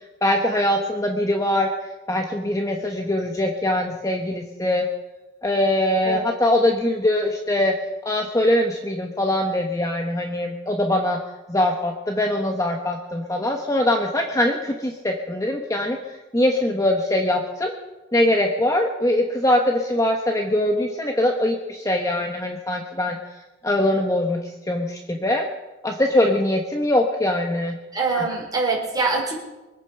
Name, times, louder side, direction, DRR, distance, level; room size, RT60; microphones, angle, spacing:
voice 1, 0.2-1.7 2.1-4.8 5.4-7.7 8.0-11.2 11.5-17.7 18.1-23.2 23.6-25.5 25.8-27.7, left 1 dB, 15° left, 3 dB, 1.1 m, -22 dB
voice 2, 27.9-29.4, right 3 dB, 20° right, -2 dB, 4.4 m, -24 dB
24.0 x 9.1 x 5.8 m, 1.1 s
head